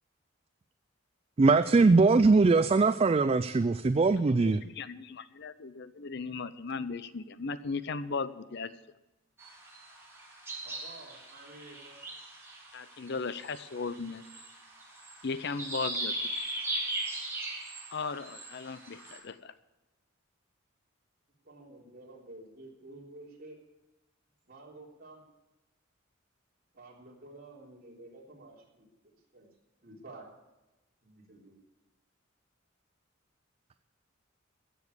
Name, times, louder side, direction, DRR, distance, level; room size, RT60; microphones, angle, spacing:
voice 1, 1.4-4.6, right 3 dB, 30° right, 12 dB, 0.3 m, -22 dB
voice 2, 4.4-8.7 12.7-14.2 15.2-16.3 17.9-19.5, left 4 dB, 55° left, 14 dB, 0.6 m, -37 dB
sound 1, 9.4-19.2, right 1 dB, 15° right, 3.3 m, -39 dB
voice 3, 10.6-12.0 21.4-23.6 24.5-25.2 26.7-29.5 29.8-30.3 31.0-31.6, right 2 dB, 45° right, -3 dB, 3.5 m, -51 dB
15.5 x 7.0 x 8.1 m, 1.0 s
head